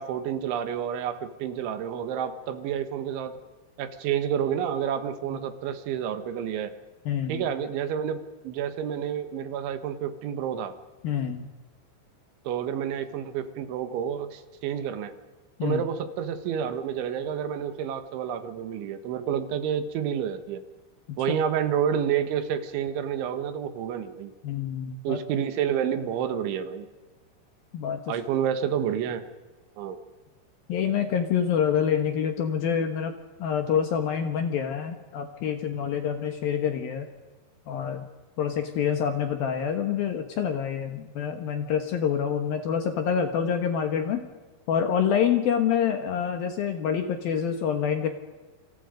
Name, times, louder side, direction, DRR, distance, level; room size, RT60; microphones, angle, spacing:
voice 1, 0.0-3.3 3.8-6.7 7.3-10.7 12.5-15.1 15.6-20.6 21.2-24.3 25.1-26.9 28.1-29.2 29.8-30.0, right 8 dB, 80° right, 10 dB, 3.8 m, -29 dB
voice 2, 7.1-7.5 11.0-11.5 15.6-15.8 21.1-21.4 24.4-25.2 27.7-28.2 30.7-37.1 37.7-38.0 38.4-44.3 44.7-48.1, left 8 dB, 65° left, 6 dB, 2.7 m, -27 dB
28.0 x 26.5 x 5.2 m, 1.3 s
omnidirectional pair, 5.4 m